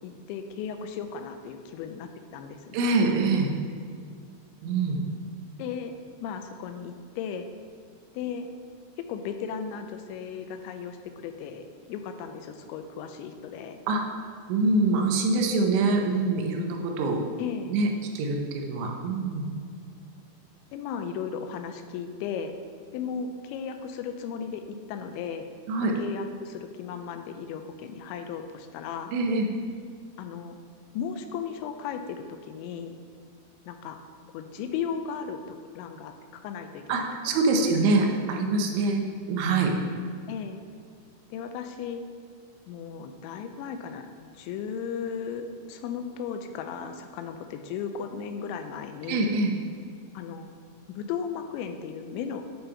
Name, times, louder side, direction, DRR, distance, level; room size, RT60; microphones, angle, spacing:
voice 1, 0.0-3.0 5.6-5.9 6.2-7.5 8.1-8.5 9.0-13.8 17.4-17.8 20.7-22.5 22.9-25.5 26.0-29.2 30.2-30.6 30.9-33.0 33.7-34.0 34.3-37.4 38.0-38.2 40.3-40.6 41.3-42.0 42.7-49.4 50.1-50.5 50.9-52.4, left 7 dB, 85° left, 7 dB, 2.8 m, -36 dB
voice 2, 2.7-3.5 4.6-5.0 13.9-14.0 14.5-17.2 17.7-17.9 18.2-19.4 25.7-25.9 29.1-29.5 36.9-39.0 39.3-39.7 49.1-49.5, right 3 dB, 80° right, 2 dB, 3.0 m, -24 dB
8.7 x 5.4 x 4.4 m, 2.1 s
omnidirectional pair, 5.3 m